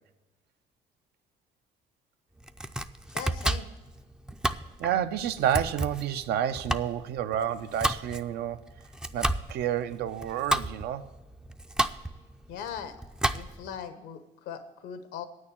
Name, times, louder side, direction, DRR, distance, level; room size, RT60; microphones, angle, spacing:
Domestic sounds home sounds, 2.4-13.8, right 1 dB, 5° right, 0.4 m, -32 dB
voice 1, 3.1-3.7 12.5-13.0 13.3-15.3, left 8 dB, 90° left, 1.2 m, -39 dB
voice 2, 4.8-8.7 9.1-11.1, right 10 dB, 75° right, 0.7 m, -30 dB
8.9 x 6.6 x 8.6 m
cardioid pair, 110°, 17 cm